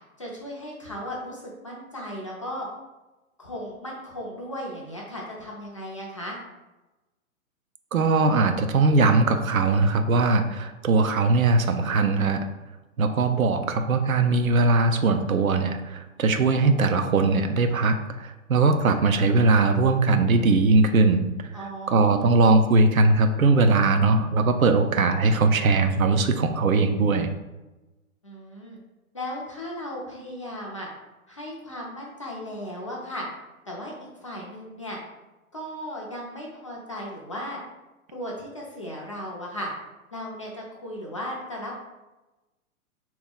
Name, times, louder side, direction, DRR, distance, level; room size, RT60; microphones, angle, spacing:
voice 1, 0.0-2.7 3.4-6.4 21.5-22.5 28.2-28.8 29.1-30.9 31.3-33.3 33.7-33.9 34.2-35.0 35.5-37.6 38.1-39.7 40.1-41.7, equal, 25° left, -3 dB, 0.4 m, -36 dB
voice 2, 7.9-12.4 13.0-21.3 21.9-27.3, right 3 dB, 70° right, 7 dB, 0.6 m, -20 dB
3.6 x 3.0 x 3.7 m, 1.1 s
figure-of-eight pair, 115°, 43 cm